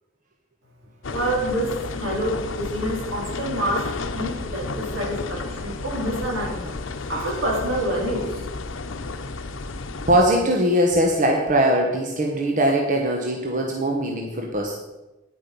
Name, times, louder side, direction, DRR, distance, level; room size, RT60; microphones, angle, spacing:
sound 1, 1.0-10.2, left 3 dB, 85° left, 0.8 m, -32 dB
voice 1, 1.1-6.8 7.1-8.4, right 1 dB, 80° right, -3 dB, 3.9 m, -27 dB
voice 2, 10.1-14.7, right 1 dB, 40° right, 1 dB, 1.2 m, -21 dB
9.9 x 8.8 x 5.4 m, 1.0 s
head